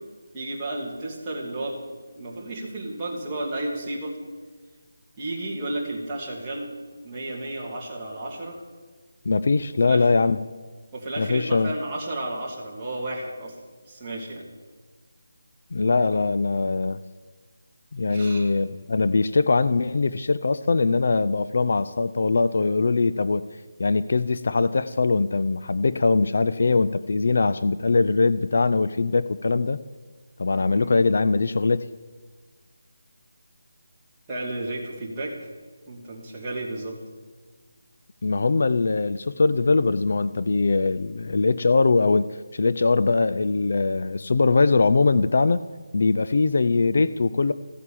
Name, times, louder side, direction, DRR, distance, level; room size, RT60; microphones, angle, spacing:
voice 1, 0.3-1.8 2.1-4.2 5.2-6.7 7.0-8.6 9.8-10.1 10.9-13.5 13.9-14.4 18.1-18.5 30.7-30.9 34.3-35.3 35.9-37.0 46.5-46.7, right 1 dB, 10° right, -6 dB, 2.6 m, -32 dB
voice 2, 9.3-10.4 11.2-11.7 15.7-17.0 17.9-23.4 23.8-29.8 30.4-31.9 38.2-45.6 45.9-47.5, left 3 dB, 50° left, 14 dB, 0.5 m, -21 dB
15.0 x 9.1 x 8.6 m, 1.4 s
figure-of-eight pair, 175°, 0 cm